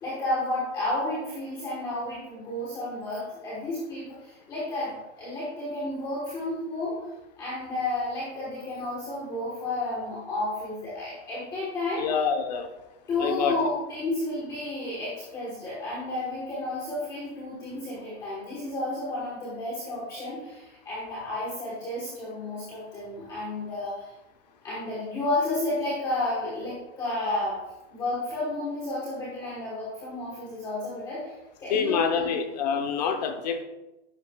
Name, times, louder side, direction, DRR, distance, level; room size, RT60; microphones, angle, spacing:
voice 1, 0.0-7.0 7.4-12.0 13.1-24.1 24.6-27.6 27.9-31.3 31.6-32.3, left 2 dB, 10° left, -7 dB, 1.1 m, -31 dB
voice 2, 12.0-12.7 13.2-13.6 31.7-33.6, left 6 dB, 35° left, 6 dB, 0.8 m, -26 dB
10.5 x 8.2 x 2.2 m, 0.98 s
supercardioid pair, 180°, 35 cm